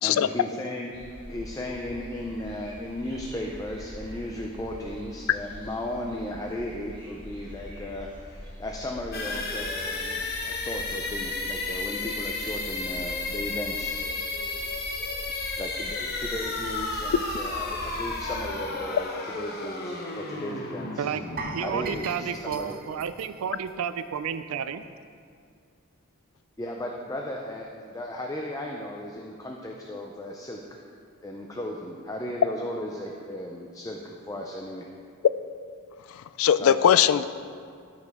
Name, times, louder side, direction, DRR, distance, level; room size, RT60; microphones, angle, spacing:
voice 1, 0.0-0.9 1.3-13.9 15.6-21.1 21.6-22.8 26.6-30.8 31.2-34.9 36.6-37.0, left 1 dB, 15° left, 0 dB, 0.5 m, -36 dB
sound 1, 0.9-18.4, equal, 25° right, 1.8 m, -43 dB
sound 2, 9.1-22.8, left 3 dB, 45° left, 0.9 m, -33 dB
sound 3, 21.4-24.4 24.6-24.8 25.3-25.4, right 3 dB, 45° right, 0.6 m, -40 dB
voice 2, 21.5-24.9, right 7 dB, 85° right, 12 dB, 0.4 m, -31 dB
voice 3, 36.4-37.2, left 9 dB, 75° left, 14 dB, 0.3 m, -19 dB
13.0 x 5.3 x 3.5 m, 2.2 s
head